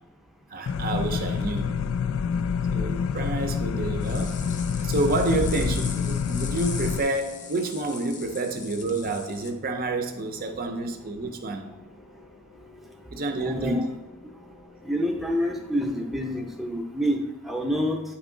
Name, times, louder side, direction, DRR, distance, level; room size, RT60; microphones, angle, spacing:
voice 1, 0.5-1.7 2.7-4.4 4.8-11.7 13.1-13.9, right 2 dB, 45° right, 5 dB, 0.6 m, -29 dB
sound 1, 0.7-16.6, left 2 dB, 85° left, 1.0 m, -51 dB
sound 2, 0.7-7.0, left 6 dB, 70° left, 0.3 m, -27 dB
sound 3, 4.0-9.5, left 5 dB, 35° left, 0.6 m, -40 dB
voice 2, 13.4-13.9 14.8-18.0, equal, ahead, 1 dB, 0.7 m, -27 dB
9.0 x 3.0 x 3.7 m, 0.96 s
head